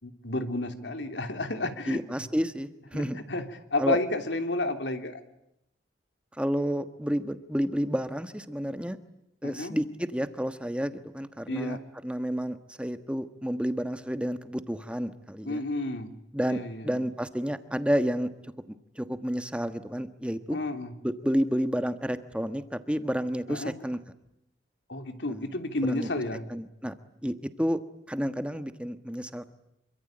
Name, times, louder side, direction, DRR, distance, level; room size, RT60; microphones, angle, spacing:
voice 1, 0.0-2.3 2.9-5.2 9.4-9.8 11.5-11.8 15.4-16.1 16.5-17.0 20.5-20.9 23.5-23.7 24.9-26.4, left 2 dB, 80° left, 7 dB, 3.0 m, -31 dB
voice 2, 1.9-3.2 3.8-4.0 6.4-9.0 9.4-11.8 12.0-15.6 16.3-18.3 18.7-20.6 21.0-24.0 25.3-25.5 25.8-26.1 26.5-26.9 27.2-27.8 28.1-29.5, equal, 5° right, 9 dB, 1.4 m, -30 dB
27.0 x 24.5 x 8.9 m, 0.80 s
head